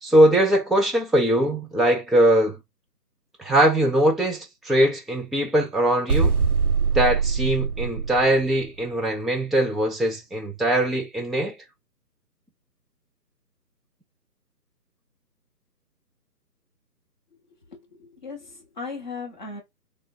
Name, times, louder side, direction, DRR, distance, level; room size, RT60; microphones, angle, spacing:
voice 1, 0.0-2.6 3.4-6.4 6.9-11.6, right 1 dB, ahead, 0.3 m, -21 dB
sound 1, 6.1-8.8, right 5 dB, 65° right, 0.6 m, -23 dB
voice 2, 17.7-19.6, left 4 dB, 30° left, 0.7 m, -37 dB
3.6 x 2.1 x 2.7 m
figure-of-eight pair, 150°, 50 cm